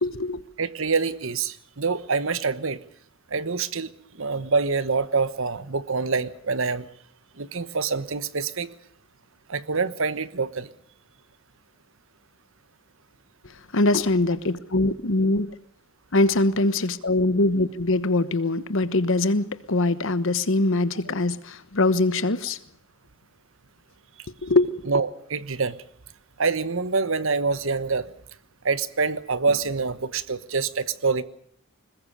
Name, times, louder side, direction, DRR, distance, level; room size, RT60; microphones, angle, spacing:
voice 1, 0.0-0.4 13.7-15.5 16.1-22.6 24.4-24.7, left 2 dB, 65° left, 14 dB, 1.2 m, -22 dB
voice 2, 0.6-2.8 3.3-3.9 4.2-6.9 7.4-8.7 9.5-10.7 24.9-25.8 26.4-28.1 28.6-31.2, right 4 dB, 65° right, 14 dB, 1.2 m, -26 dB
21.0 x 21.0 x 6.8 m, 0.64 s
head